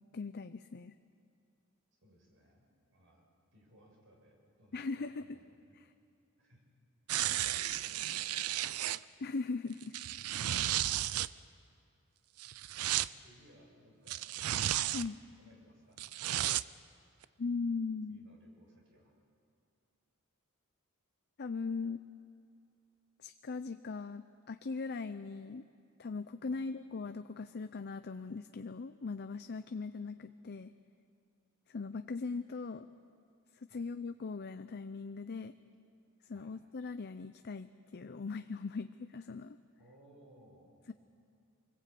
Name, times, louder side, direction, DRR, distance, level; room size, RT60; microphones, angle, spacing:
voice 1, 0.1-0.9 4.7-5.4 5.8-5.9 9.2-10.0 10.3-10.4 14.9-15.2 17.4-18.2 21.4-22.0 23.2-25.6 26.0-30.7 31.7-32.9 33.6-35.5 36.3-39.6, left 4 dB, 50° left, 10 dB, 0.5 m, -39 dB
voice 2, 2.0-5.8 6.4-6.6 7.6-8.8 12.8-14.3 15.4-16.0 18.1-19.2 26.5-26.6 33.7-33.8 36.3-36.5 39.8-40.9, equal, 60° right, 0 dB, 6.1 m, -63 dB
sound 1, 7.1-9.0 9.8-11.3 12.4-13.1 14.1-15.1 16.0-16.6 17.2-17.3, right 13 dB, 80° right, 0.5 m, -33 dB
25.0 x 20.5 x 8.5 m, 2.5 s
head